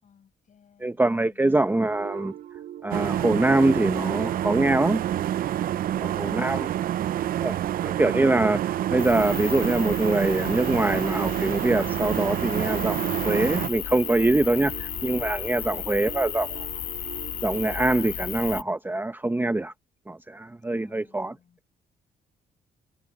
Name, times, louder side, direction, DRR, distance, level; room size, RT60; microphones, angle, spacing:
voice 1, 0.0-1.5 5.8-6.9 14.6-14.9 15.5-16.2 20.7-21.6, left 7 dB, 50° left, 6.5 m, -57 dB
voice 2, 0.8-2.3 2.8-5.0 6.0-6.7 7.4-7.6 7.8-13.0 13.2-16.5 17.4-19.7 20.1-21.3, right 2 dB, 10° right, 0.9 m, -24 dB
sound 1, 1.8-17.8, right 11 dB, 80° right, 1.8 m, -42 dB
sound 2, 2.9-13.7, right 12 dB, 65° right, 0.5 m, -28 dB
sound 3, 9.0-18.6, left 10 dB, 75° left, 2.0 m, -35 dB
cardioid pair, 100°, 16 cm